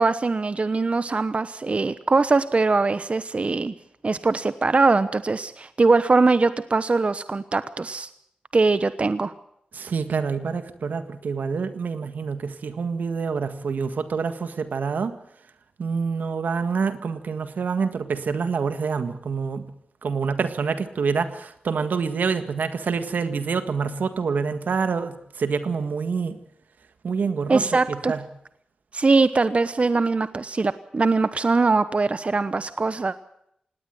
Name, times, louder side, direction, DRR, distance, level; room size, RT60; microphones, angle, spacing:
voice 1, 0.0-3.7 4.0-8.1 8.5-9.3 27.5-28.1 28.9-33.1, right 3 dB, 45° right, 13 dB, 1.0 m, -21 dB
voice 2, 9.7-15.2 15.8-19.6 20.0-26.4 27.0-27.6 27.9-28.2, right 5 dB, 80° right, 10 dB, 1.7 m, -26 dB
18.5 x 18.0 x 7.9 m, 0.72 s
cardioid pair, 50°, 3 cm